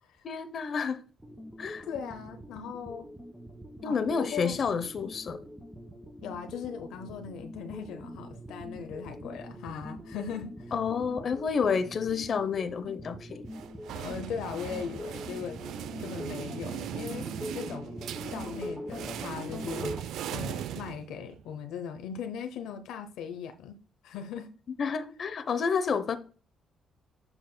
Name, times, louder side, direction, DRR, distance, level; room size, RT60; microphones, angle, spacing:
voice 1, 0.2-1.0 1.6-1.8 3.8-5.4 10.7-13.5 24.8-26.2, left 6 dB, 50° left, 0.8 m, -29 dB
sound 1, 1.2-20.0, equal, ahead, 1.3 m, -43 dB
voice 2, 1.8-3.1 3.8-4.6 6.2-10.7 13.9-15.6 16.0-17.9 18.2-20.0 20.3-23.8 24.0-24.5, left 7 dB, 90° left, 0.8 m, -39 dB
sound 2, 13.5-21.4, right 11 dB, 80° right, 0.3 m, -39 dB
7.8 x 6.0 x 2.2 m
cardioid pair, 90°, 0 cm